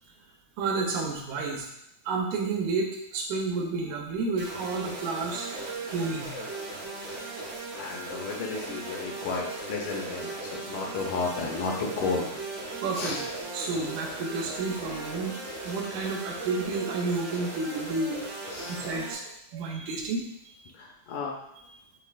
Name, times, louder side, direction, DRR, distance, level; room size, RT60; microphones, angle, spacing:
voice 1, 0.6-1.7 2.1-6.4 12.8-13.2 13.5-15.3 15.6-20.6, right 3 dB, 80° right, 1 dB, 2.1 m, -31 dB
sound 1, 4.4-19.1, right 2 dB, 65° right, 1.8 m, -38 dB
voice 2, 7.7-12.2 12.9-13.2 14.9-15.1 18.5-18.9 20.7-21.3, left 4 dB, 80° left, -1 dB, 2.0 m, -33 dB
6.4 x 3.3 x 2.4 m, 0.80 s
omnidirectional pair, 3.5 m